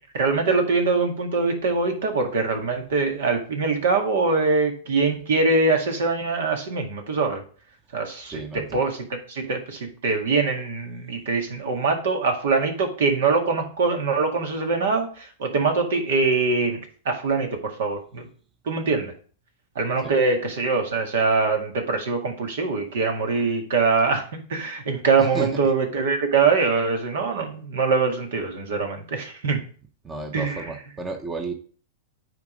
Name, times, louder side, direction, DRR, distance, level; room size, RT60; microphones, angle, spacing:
voice 1, 0.1-7.4 7.9-16.8 17.1-18.3 18.7-19.1 19.8-29.6 30.3-30.7, right 4 dB, 70° right, 3 dB, 2.1 m, -23 dB
voice 2, 8.3-8.8 20.0-20.1 25.2-25.6 30.0-31.5, right 3 dB, 20° right, 5 dB, 1.0 m, -32 dB
9.5 x 3.8 x 5.1 m, 0.44 s
hypercardioid pair, 120°, 0 cm